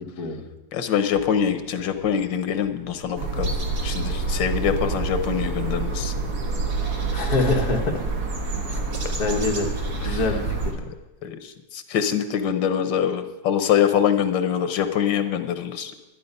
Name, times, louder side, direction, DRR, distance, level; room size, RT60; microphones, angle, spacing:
voice 1, 0.7-3.5 3.8-6.1 10.0-10.2 11.2-15.9, left 8 dB, 85° left, 9 dB, 1.6 m, -24 dB
sound 1, 1.1-8.2, right 1 dB, 40° right, 3.7 m, -41 dB
sound 2, 3.2-10.7, right 3 dB, 60° right, 2.1 m, -27 dB
voice 2, 7.1-7.8 8.7-8.8 9.2-9.7 10.0-10.8, left 3 dB, 55° left, 2 dB, 1.9 m, -24 dB
11.5 x 11.0 x 5.4 m, 1.1 s
omnidirectional pair, 1.9 m